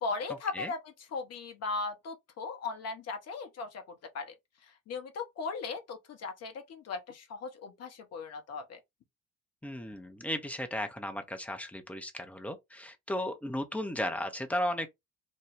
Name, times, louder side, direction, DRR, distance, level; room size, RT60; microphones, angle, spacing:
voice 1, 0.0-3.8 4.1-4.3 4.9-8.8, left 4 dB, 35° left, 0.8 m, -38 dB
voice 2, 9.6-14.9, left 1 dB, 5° left, 0.6 m, -35 dB
2.9 x 2.2 x 3.4 m
figure-of-eight pair, 55°, 42 cm